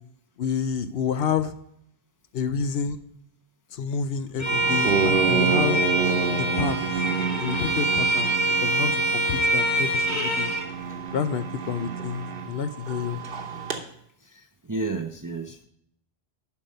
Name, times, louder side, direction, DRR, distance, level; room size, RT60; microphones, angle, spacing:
voice 1, 0.4-1.5 2.3-3.0 3.7-5.8 6.4-6.8 7.4-8.3 8.6-10.5 11.1-13.2, left 6 dB, 70° left, 12 dB, 0.8 m, -29 dB
Bowed string instrument, 4.4-10.7, right 2 dB, 15° left, 1.2 m, -25 dB
sound 1, 4.5-13.8, right 6 dB, 55° right, 1.1 m, -29 dB
voice 2, 14.2-15.6, right 3 dB, 25° right, 5 dB, 0.4 m, -32 dB
7.2 x 5.4 x 6.5 m, 0.71 s
omnidirectional pair, 1.1 m